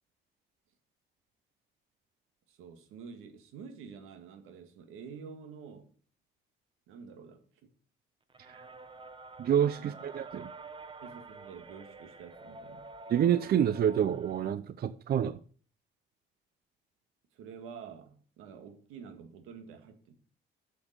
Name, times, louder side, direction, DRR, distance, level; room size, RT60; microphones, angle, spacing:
voice 1, 2.5-5.9 6.9-7.4 9.8-10.0 11.0-12.9 17.3-20.2, right 6 dB, 90° right, 1.9 m, -48 dB
sound 1, 8.3-14.5, right 3 dB, 25° right, 1.0 m, -48 dB
voice 2, 9.4-10.5 13.1-15.4, right 9 dB, 50° right, 0.6 m, -28 dB
7.0 x 6.7 x 6.7 m
cardioid pair, 105°, 21 cm